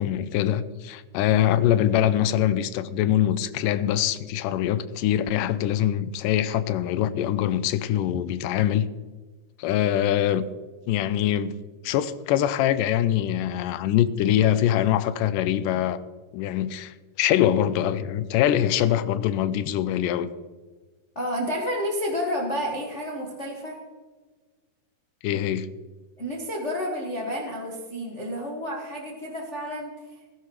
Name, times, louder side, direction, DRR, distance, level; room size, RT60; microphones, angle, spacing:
voice 1, 0.0-8.9 9.6-10.5 10.9-11.5 11.8-16.0 16.3-20.3 25.2-25.7, left 11 dB, 80° left, 2.1 m, -23 dB
voice 2, 21.1-23.8 26.2-30.0, equal, 40° left, 1.0 m, -30 dB
16.0 x 12.5 x 3.1 m
omnidirectional pair, 3.9 m